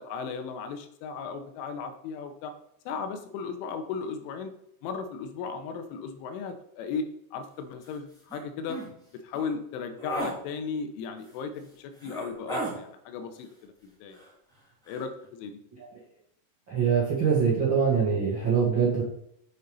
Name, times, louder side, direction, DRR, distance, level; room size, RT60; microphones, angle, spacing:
voice 1, 0.0-2.5 2.9-4.5 4.8-8.8 9.2-13.7 14.0-14.2 14.9-15.6, left 5 dB, 85° left, 8 dB, 3.4 m, -36 dB
sound 1, 7.8-7.9 8.3-8.4 8.7-8.9 9.3-9.5 10.0-10.3 11.3-11.4 12.0-12.7 14.1-14.6 14.8-15.0, right 1 dB, ahead, 1.8 m, -35 dB
voice 2, 16.7-19.0, right 6 dB, 45° right, -6 dB, 1.5 m, -23 dB
8.0 x 6.9 x 5.4 m, 0.74 s
omnidirectional pair, 5.5 m